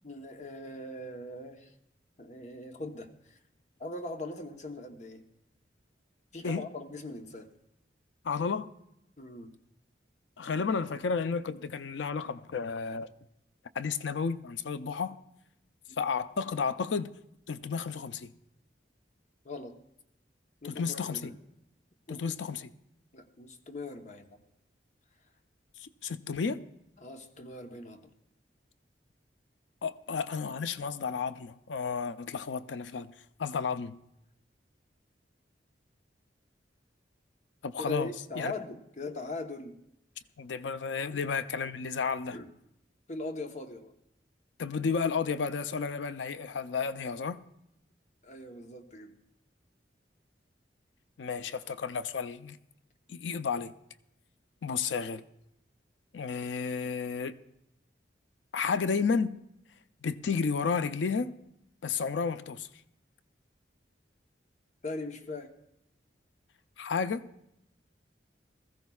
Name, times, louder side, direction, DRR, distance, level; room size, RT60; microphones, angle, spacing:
voice 1, 0.0-1.7 2.2-3.4 3.8-5.2 6.3-7.5 9.2-9.5 19.4-19.8 20.6-21.4 22.1-22.3 23.1-24.4 27.0-28.1 37.8-39.8 41.1-41.2 42.3-42.5 43.1-43.9 48.2-49.1 64.8-65.5, left 2 dB, 40° left, 0.9 m, -40 dB
voice 2, 8.2-8.7 10.4-13.1 13.7-15.2 16.0-17.1 17.5-18.3 20.6-21.3 22.1-22.7 25.8-26.7 29.8-33.1 33.4-34.0 37.6-38.1 38.4-38.5 40.4-42.4 44.6-47.4 51.2-52.6 53.1-53.7 54.6-55.2 56.1-57.4 58.5-59.4 60.0-61.3 61.8-62.7 66.8-67.3, left 5 dB, 90° left, 0.5 m, -32 dB
20.5 x 14.5 x 2.3 m
head